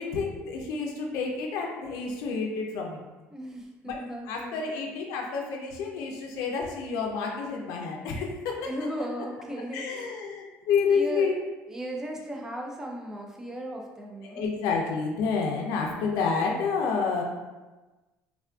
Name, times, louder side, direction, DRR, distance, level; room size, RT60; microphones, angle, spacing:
voice 1, 0.0-3.0 3.9-4.0 4.3-8.3 9.7-11.3 14.2-17.2, left 5 dB, 85° left, 0 dB, 0.4 m, -29 dB
voice 2, 3.3-4.6 8.6-10.1 10.9-11.3 11.7-14.6, right 1 dB, 10° right, 0 dB, 0.4 m, -36 dB
3.5 x 2.4 x 2.3 m, 1.2 s
cardioid pair, 155°, 6 cm